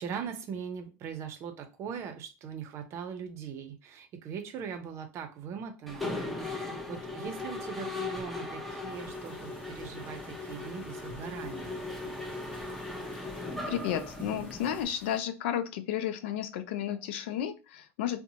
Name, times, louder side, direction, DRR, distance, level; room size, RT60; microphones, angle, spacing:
voice 1, 0.0-6.1 6.4-11.8, right 7 dB, 50° right, 7 dB, 0.6 m, -40 dB
Mechanisms, 5.9-14.8, left 2 dB, ahead, 0.6 m, -38 dB
sound 1, 8.9-15.2, left 2 dB, 30° left, 0.9 m, -54 dB
voice 2, 13.7-18.2, left 10 dB, 85° left, 10 dB, 0.4 m, -32 dB
2.8 x 2.1 x 2.7 m, 0.30 s
supercardioid pair, 105°, 6 cm